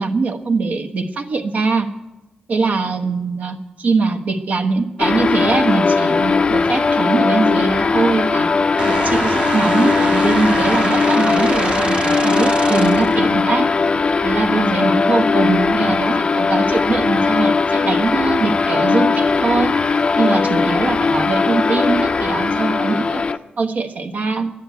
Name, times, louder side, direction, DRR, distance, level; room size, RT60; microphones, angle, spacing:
voice 1, 0.0-1.9 2.5-8.5 8.9-13.7 14.2-19.8 20.2-23.2 23.6-24.5, right 4 dB, 65° right, 4 dB, 1.1 m, -21 dB
sound 1, 5.0-23.4, left 4 dB, 40° left, 0.5 m, -18 dB
sound 2, 8.8-13.2, right 3 dB, 40° right, 0.5 m, -25 dB
11.5 x 10.0 x 9.2 m, 1.0 s
wide cardioid pair, 115°, 3 cm